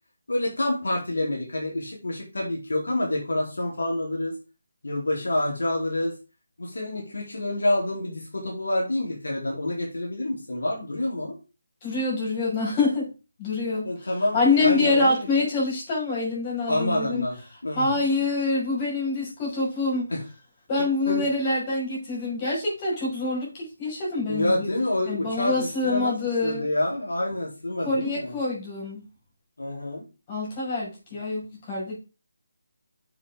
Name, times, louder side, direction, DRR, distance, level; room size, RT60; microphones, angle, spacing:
voice 1, 0.3-4.3 4.8-6.1 6.6-11.4 13.8-15.3 16.7-18.2 20.1-20.2 21.1-21.3 24.3-26.1 26.4-28.4 29.6-30.0, left 1 dB, 75° left, -2 dB, 3.4 m, -27 dB
voice 2, 11.8-13.1 13.4-13.9 14.3-17.3 17.7-20.1 20.7-24.7 25.0-26.7 27.8-29.0 30.3-31.9, left 3 dB, 25° left, -5 dB, 5.5 m, -26 dB
7.8 x 7.6 x 3.7 m, 0.31 s
figure-of-eight pair, 155°, 0 cm